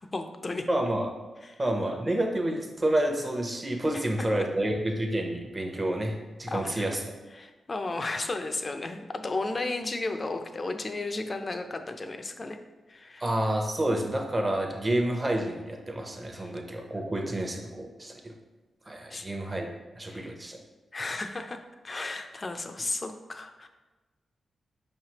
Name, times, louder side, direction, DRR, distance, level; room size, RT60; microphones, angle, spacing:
voice 1, 0.1-0.7 1.4-1.6 3.9-4.5 6.5-6.9 7.3-12.6 12.9-13.2 16.3-16.5 19.1-19.3 20.1-20.4 20.9-23.7, left 2 dB, 40° left, 7 dB, 0.5 m, -34 dB
voice 2, 0.7-1.1 1.6-7.1 13.2-18.3 18.9-19.7 20.0-20.6, right 1 dB, 30° right, 2 dB, 0.8 m, -29 dB
5.5 x 3.3 x 2.9 m, 1.2 s
cardioid pair, 55°, 0 cm